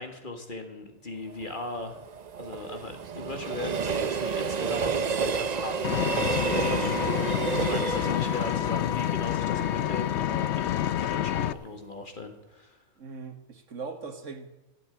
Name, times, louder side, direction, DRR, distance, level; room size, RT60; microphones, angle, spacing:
voice 1, 0.0-2.1 2.4-7.3 7.6-12.8, left 2 dB, 40° left, 5 dB, 1.8 m, -39 dB
Train, 1.3-10.4 10.8-10.9, right 5 dB, 45° right, 0.6 m, -31 dB
Vehicle, 5.8-11.5, left 11 dB, 65° left, 0.9 m, -28 dB
voice 2, 13.0-14.6, right 4 dB, 70° right, 7 dB, 1.8 m, -40 dB
15.0 x 8.9 x 8.8 m, 0.99 s
omnidirectional pair, 1.4 m